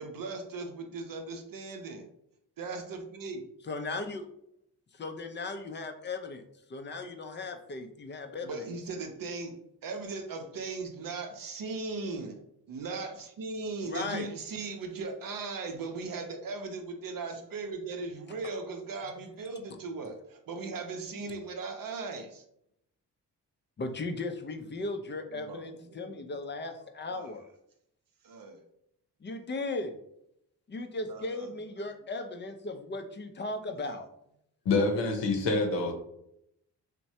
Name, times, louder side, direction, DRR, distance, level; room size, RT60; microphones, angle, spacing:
voice 1, 0.0-2.1 2.6-3.4 8.4-9.5 9.8-12.4 12.7-22.4 25.3-26.3 27.1-27.3 28.2-28.6 31.1-31.5 33.8-33.9, right 3 dB, 50° right, 5 dB, 0.6 m, -38 dB
voice 2, 3.7-4.2 4.9-6.4 6.7-8.6 13.8-14.3 23.8-27.4 29.2-29.9 30.7-34.1, left 2 dB, 25° left, 6 dB, 0.4 m, -37 dB
voice 3, 34.6-35.9, left 3 dB, 80° left, 2 dB, 0.8 m, -26 dB
3.0 x 2.1 x 2.7 m, 0.75 s
supercardioid pair, 50°, 43 cm